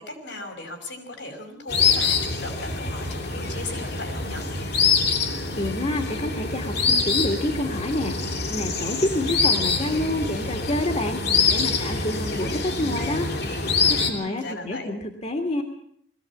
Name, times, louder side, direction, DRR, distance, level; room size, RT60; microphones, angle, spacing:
voice 1, 0.0-4.4 13.9-14.9, left 2 dB, 75° left, 4 dB, 5.7 m, -37 dB
sound 1, 1.7-14.1, left 4 dB, 60° left, 3.0 m, -25 dB
voice 2, 5.5-8.2 8.5-11.2 11.5-13.3 13.8-15.6, left 1 dB, 35° left, 3 dB, 2.0 m, -28 dB
21.0 x 15.5 x 8.6 m, 0.69 s
head